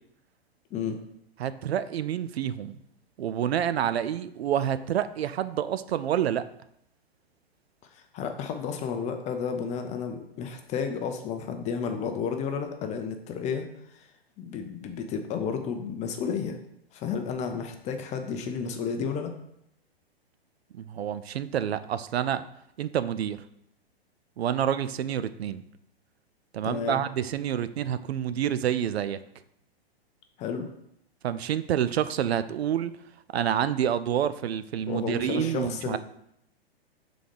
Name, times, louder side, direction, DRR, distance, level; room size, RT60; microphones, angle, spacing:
voice 1, 1.4-2.8 3.2-6.4 20.7-22.5 22.8-23.4 24.4-25.6 26.5-29.2 31.2-32.9 33.3-36.0, right 9 dB, 80° right, 13 dB, 0.5 m, -28 dB
voice 2, 7.9-14.1 14.4-16.6 16.9-19.3 26.6-27.0 30.4-30.7 34.9-36.0, left 6 dB, 20° left, 6 dB, 0.6 m, -32 dB
4.9 x 3.9 x 5.3 m, 0.77 s
hypercardioid pair, 120°, 32 cm